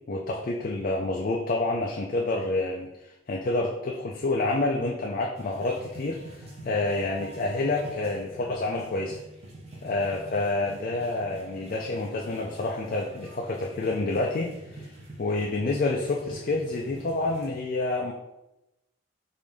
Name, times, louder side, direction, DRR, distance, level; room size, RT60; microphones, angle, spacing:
voice 1, 0.1-9.2 9.8-14.9 15.2-18.1, left 2 dB, 45° left, 0 dB, 0.4 m, -28 dB
sound 1, 5.3-17.5, right 1 dB, 35° right, 0.9 m, -45 dB
4.9 x 2.7 x 3.4 m, 0.93 s
head